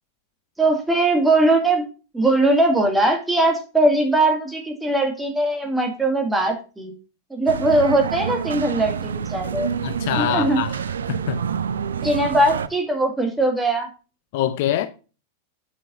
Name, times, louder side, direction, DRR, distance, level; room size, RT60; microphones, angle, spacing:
voice 1, 0.6-1.9 2.1-6.9 7.3-9.7 10.2-10.6 12.0-13.9, right 2 dB, 5° right, 2.0 m, -20 dB
sound 1, 7.5-12.7, right 7 dB, 65° right, 0.5 m, -27 dB
voice 2, 9.8-10.8 11.1-11.4 14.3-14.9, left 12 dB, 50° left, 0.6 m, -24 dB
8.3 x 6.4 x 2.5 m
figure-of-eight pair, 90°, 0 cm